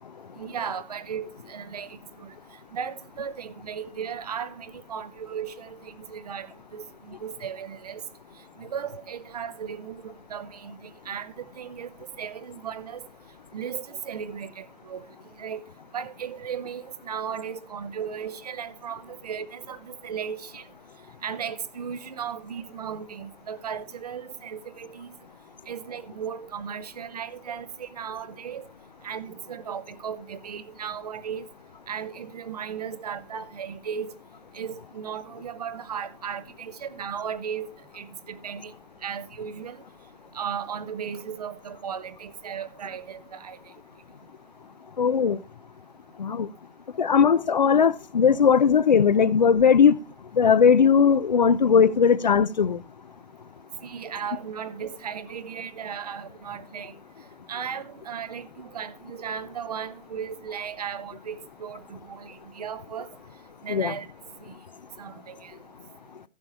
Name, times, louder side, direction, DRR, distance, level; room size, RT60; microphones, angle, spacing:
voice 1, 0.4-2.3 2.7-8.0 8.6-11.9 12.2-13.1 13.5-15.0 15.4-15.6 15.9-20.6 21.2-25.1 25.7-28.7 29.0-31.5 31.9-34.1 34.5-38.7 39.0-39.8 40.3-43.6 53.8-56.9 57.5-63.1 63.6-64.1 64.4-64.5 65.0-65.5, right 7 dB, 30° right, 0.8 m, -36 dB
voice 2, 45.0-45.4 46.2-46.5 47.0-50.0 50.3-52.8 63.7-63.9, left 6 dB, 35° left, 0.6 m, -19 dB
15.0 x 6.8 x 4.2 m
hypercardioid pair, 160°, 37 cm